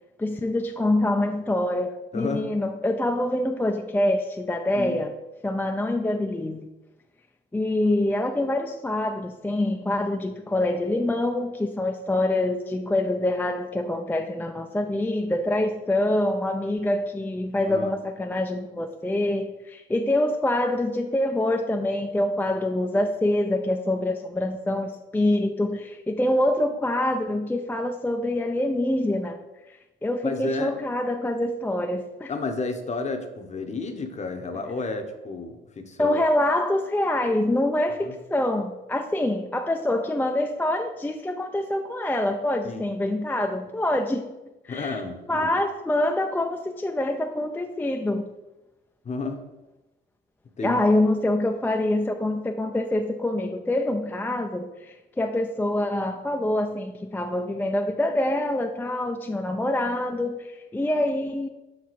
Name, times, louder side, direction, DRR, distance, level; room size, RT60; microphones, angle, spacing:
voice 1, 0.2-5.1 5.4-6.7 7.5-29.4 30.0-32.3 36.0-44.3 44.6-45.0 45.3-48.3 50.6-61.5, left 1 dB, 10° left, 4 dB, 0.4 m, -25 dB
voice 2, 2.1-2.5 4.7-5.0 17.7-17.9 30.2-30.7 32.3-36.2 38.0-38.1 42.6-42.8 44.7-45.6 49.0-49.4 50.6-50.8, left 3 dB, 35° left, 6 dB, 0.8 m, -31 dB
5.6 x 4.6 x 4.1 m, 1.0 s
cardioid pair, 90°, 20 cm